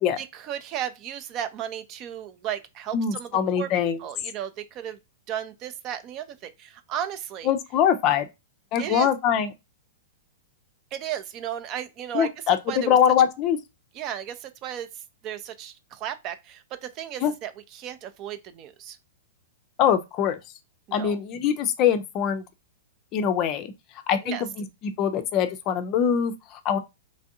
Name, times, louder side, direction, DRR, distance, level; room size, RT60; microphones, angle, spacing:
voice 1, 0.2-3.3 3.6-3.7 4.0-5.0 5.3-7.5 8.8-9.1 10.9-13.0 13.9-14.9 15.2-19.0 20.9-21.2 24.2-24.4, right 10 dB, 35° right, 0.6 m, -34 dB
voice 2, 2.9-4.0 7.5-8.3 8.7-9.5 12.1-13.6 17.2-17.3 19.8-20.4 20.9-22.4 23.1-23.7 24.1-26.3 26.6-26.8, left 8 dB, 35° left, 0.5 m, -23 dB
3.4 x 3.2 x 2.7 m
figure-of-eight pair, 100°, 0 cm